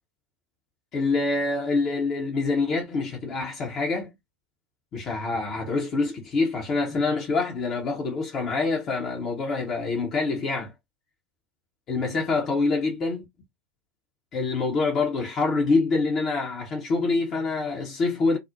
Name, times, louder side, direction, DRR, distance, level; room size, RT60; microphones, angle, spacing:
voice 1, 0.9-4.1 4.9-10.7 11.9-13.2 14.3-18.4, left 3 dB, 30° left, 0.7 m, -26 dB
2.4 x 2.0 x 2.7 m
figure-of-eight pair, 90°, 0 cm